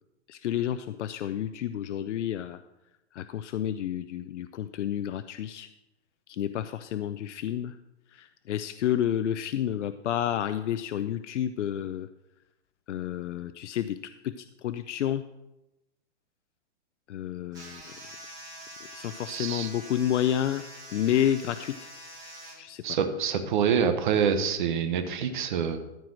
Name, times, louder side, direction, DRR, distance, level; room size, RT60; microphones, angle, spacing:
voice 1, 0.3-2.6 3.1-5.7 6.3-7.7 8.1-12.1 12.9-14.0 14.2-15.2 17.1-17.8 18.9-20.6 20.9-21.7 22.6-22.8, left 10 dB, 85° left, 11 dB, 0.6 m, -30 dB
sound 1, 17.5-22.5, right 1 dB, 10° right, 2.3 m, -45 dB
voice 2, 19.3-19.7 22.8-25.8, right 7 dB, 45° right, 7 dB, 1.0 m, -26 dB
13.5 x 4.8 x 6.3 m, 0.95 s
hypercardioid pair, 175°, 35 cm